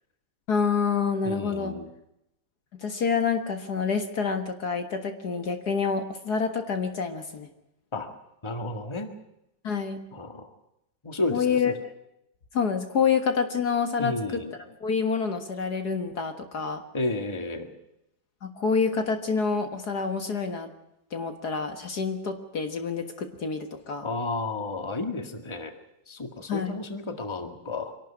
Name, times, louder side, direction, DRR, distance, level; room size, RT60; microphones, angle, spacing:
voice 1, 0.5-1.8 2.8-7.5 9.6-10.1 11.3-11.7 12.5-14.4 14.8-16.8 18.4-20.7 21.1-24.1 26.5-26.8, left 5 dB, 55° left, 7 dB, 2.0 m, -27 dB
voice 2, 1.2-1.9 7.9-8.1 8.4-9.1 10.1-10.5 11.0-11.7 14.0-14.5 16.9-17.7 24.0-25.7 26.1-27.9, left 2 dB, 15° left, 6 dB, 1.8 m, -32 dB
25.0 x 12.0 x 10.0 m, 0.84 s
omnidirectional pair, 2.1 m